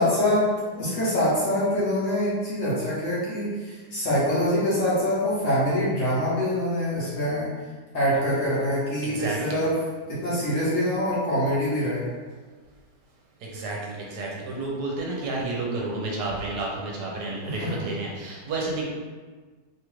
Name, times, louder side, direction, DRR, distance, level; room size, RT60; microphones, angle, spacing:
voice 1, 0.0-7.5 7.9-9.7 10.1-12.0 17.4-17.7, left 1 dB, 55° left, -8 dB, 1.0 m, -24 dB
voice 2, 9.0-9.6 13.4-18.8, right 2 dB, 75° right, -3 dB, 1.2 m, -31 dB
3.0 x 2.4 x 3.0 m, 1.4 s
omnidirectional pair, 1.9 m